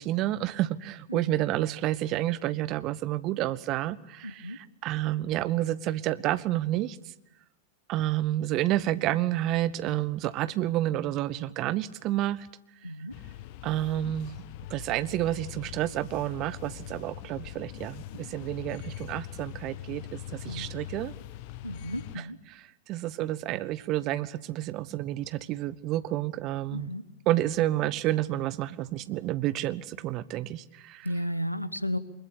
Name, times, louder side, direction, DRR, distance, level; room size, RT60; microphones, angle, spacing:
voice 1, 0.0-7.0 7.9-12.5 13.6-14.3 14.7-21.1 22.1-26.9 27.3-31.1, right 14 dB, 40° right, 1.0 m, -30 dB
voice 2, 1.1-1.4 4.2-4.6 12.8-13.1 20.5-20.7 21.6-22.4 26.7-27.0 31.0-32.0, equal, 90° left, 1.2 m, -33 dB
sound 1, 13.1-22.2, left 13 dB, 45° left, 1.0 m, -42 dB
24.0 x 21.5 x 8.5 m
figure-of-eight pair, 90°, 0 cm